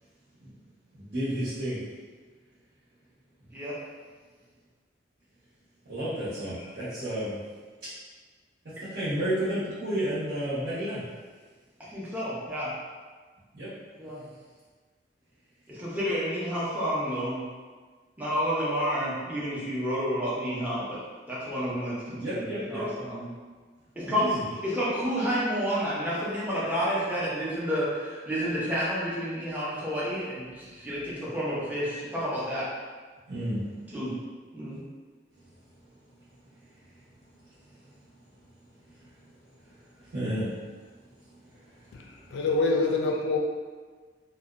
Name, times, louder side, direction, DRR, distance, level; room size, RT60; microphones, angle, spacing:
voice 1, 0.9-1.8 5.9-7.4 8.6-11.0 13.5-13.7 22.1-22.9 24.0-24.4 33.3-33.6 40.0-40.5 42.3-42.4, right 1 dB, 60° right, -14 dB, 0.9 m, -31 dB
voice 2, 11.9-12.7 14.0-14.2 15.7-17.4 18.2-21.0 21.3-23.3 24.0-24.3 24.6-32.6 33.9-34.1 34.5-34.8, equal, 10° right, -8 dB, 0.5 m, -30 dB
voice 3, 42.3-43.4, left 3 dB, 70° left, 1 dB, 0.3 m, -25 dB
2.7 x 2.1 x 2.4 m, 1.5 s
head